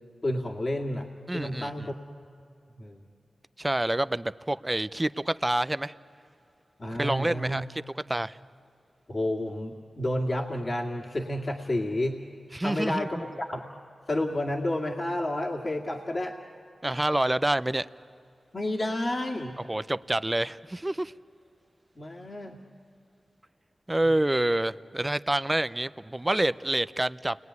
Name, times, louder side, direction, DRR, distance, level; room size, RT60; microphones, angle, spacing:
voice 1, 0.2-2.0 2.8-3.1 6.8-7.6 9.1-12.2 12.6-13.7 14.1-16.4 18.5-19.6 22.0-22.6 24.0-24.1, left 1 dB, 50° left, -1 dB, 2.3 m, -30 dB
voice 2, 1.3-1.9 3.6-5.9 6.9-8.4 12.5-13.2 16.8-17.9 19.7-21.1 23.9-27.4, right 1 dB, 20° right, 15 dB, 0.7 m, -27 dB
29.5 x 21.0 x 9.6 m, 2.6 s
cardioid pair, 45°, 0 cm